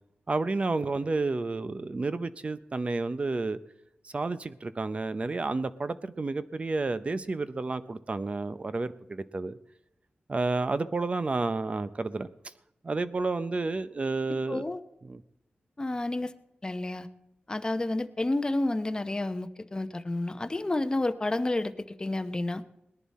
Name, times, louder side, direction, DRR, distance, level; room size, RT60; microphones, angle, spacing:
voice 1, 0.3-3.6 4.0-9.5 10.3-12.3 12.8-14.7 15.0-15.2, right 3 dB, 35° right, 13 dB, 0.7 m, -30 dB
voice 2, 14.5-14.8 15.8-16.3 16.6-17.1 17.5-22.6, left 2 dB, 20° left, 10 dB, 0.7 m, -30 dB
20.0 x 10.5 x 4.3 m, 0.88 s
wide cardioid pair, 115°, 4 cm